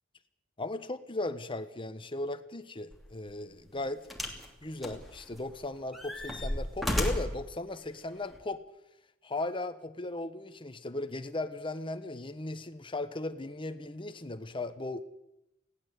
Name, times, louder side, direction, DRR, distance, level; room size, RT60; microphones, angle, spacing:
voice 1, 0.6-4.0 4.6-8.6 9.2-15.0, left 2 dB, 25° left, 10 dB, 1.2 m, -37 dB
sound 1, 2.9-3.1 4.1-4.5 4.8-5.5 5.9-7.4 8.3-8.4, left 1 dB, ahead, 2.9 m, -33 dB
20.0 x 16.5 x 8.3 m, 0.87 s
head